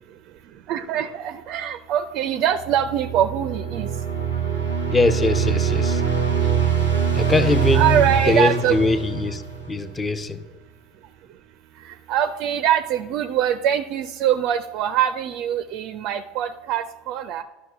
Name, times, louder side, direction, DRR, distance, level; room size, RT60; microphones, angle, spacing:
voice 1, 0.7-3.9 7.7-8.8 11.8-17.4, right 10 dB, 45° right, 0.4 m, -23 dB
sound 1, 2.6-10.0, right 8 dB, 85° left, 1.2 m, -23 dB
voice 2, 4.9-6.0 7.2-10.4, left 3 dB, 15° left, 0.6 m, -22 dB
12.0 x 6.0 x 3.4 m
figure-of-eight pair, 75°, 0 cm